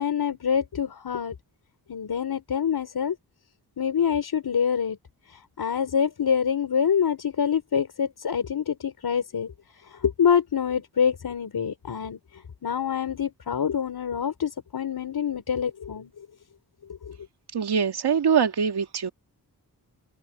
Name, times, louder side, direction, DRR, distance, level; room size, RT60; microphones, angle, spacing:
voice 1, 0.0-1.3 1.9-3.2 3.8-5.0 5.3-9.5 9.9-12.2 12.6-16.1 17.1-17.2, left 7 dB, 70° left, 4.2 m, -26 dB
voice 2, 17.5-19.1, right 7 dB, 80° right, 2.2 m, -23 dB
cardioid pair, 70°, 39 cm